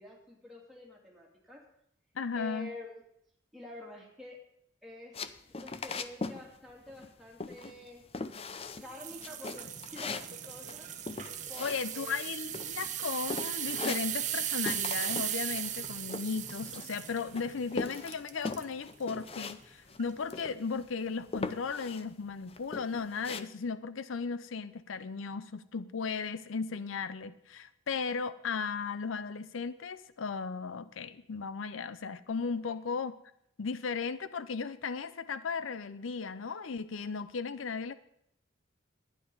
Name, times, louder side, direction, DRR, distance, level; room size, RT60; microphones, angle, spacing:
voice 1, 0.0-1.7 2.3-3.0 3.5-4.5 4.8-8.1 8.8-10.9 11.5-12.3, left 1 dB, ahead, -3 dB, 2.5 m, -48 dB
voice 2, 2.2-2.7 11.6-33.1 33.6-37.9, left 5 dB, 90° left, 15 dB, 0.6 m, -36 dB
sound 1, 5.1-6.4 6.7-7.1 7.4-7.9 8.1-8.9 9.2-12.2 12.5-13.0 13.3-14.4 14.7-15.3 15.6-17.0 17.3-19.6 19.9-20.0 20.3-20.9 21.3-22.0 22.5-23.4, left 3 dB, 30° left, 0.5 m, -39 dB
sound 2, 8.8-18.7 19.2-19.4 20.0-20.1, right 10 dB, 40° right, 0.9 m, -37 dB
12.0 x 10.0 x 5.4 m, 0.73 s
head